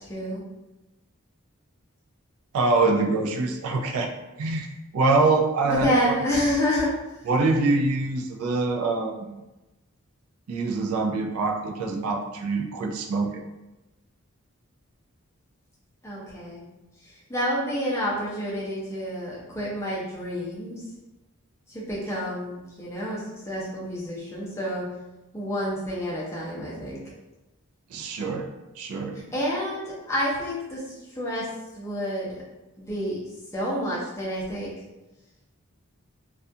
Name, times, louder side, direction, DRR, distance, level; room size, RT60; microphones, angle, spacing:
voice 1, 0.0-0.4 5.6-6.9 16.0-16.6 17.3-20.8 21.7-23.2 23.5-24.8 25.3-27.0 29.3-30.8 31.2-31.5 31.7-32.4 32.8-33.2 33.5-34.7, equal, 10° left, -6 dB, 0.5 m, -28 dB
voice 2, 2.5-4.1 4.4-6.1 7.3-9.4 10.5-13.4 27.9-28.5 28.8-29.2, right 3 dB, 75° right, 3 dB, 0.3 m, -24 dB
2.3 x 2.2 x 2.6 m, 1.0 s
head